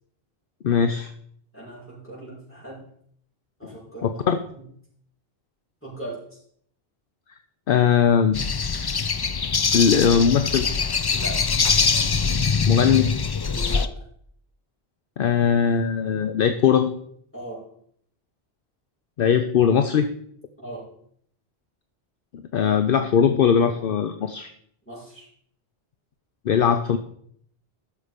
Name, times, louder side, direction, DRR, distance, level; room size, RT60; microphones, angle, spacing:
voice 1, 0.6-1.1 4.0-4.4 7.7-8.4 9.7-10.7 12.7-13.2 15.2-16.9 19.2-20.1 22.5-24.5 26.5-27.0, left 7 dB, 60° left, 8 dB, 0.8 m, -20 dB
voice 2, 1.5-2.8 3.6-4.2 5.8-6.4 11.1-11.4 13.5-14.0 17.3-17.6 20.6-20.8 24.9-25.3, right 1 dB, 10° left, -7 dB, 5.6 m, -38 dB
sound 1, 8.3-13.9, left 5 dB, 40° left, 0.3 m, -23 dB
12.5 x 6.9 x 5.1 m, 0.66 s
omnidirectional pair, 1.1 m